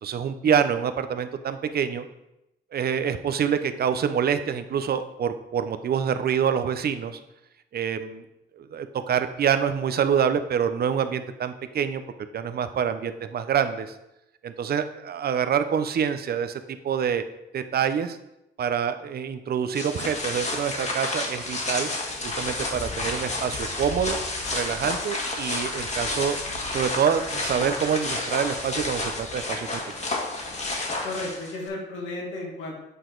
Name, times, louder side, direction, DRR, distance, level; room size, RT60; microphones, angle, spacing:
voice 1, 0.0-2.1 2.7-7.2 7.7-8.2 8.5-12.0 12.3-13.9 14.4-17.2 17.5-18.2 18.6-21.9 22.2-24.2 24.5-26.4 26.7-29.8, right 8 dB, 50° right, 10 dB, 0.7 m, -26 dB
sound 1, 19.7-31.7, left 2 dB, 35° left, 1.6 m, -30 dB
voice 2, 31.0-32.8, left 2 dB, 90° left, -2 dB, 2.1 m, -34 dB
8.1 x 4.7 x 3.9 m, 0.88 s
cardioid pair, 90°, 20 cm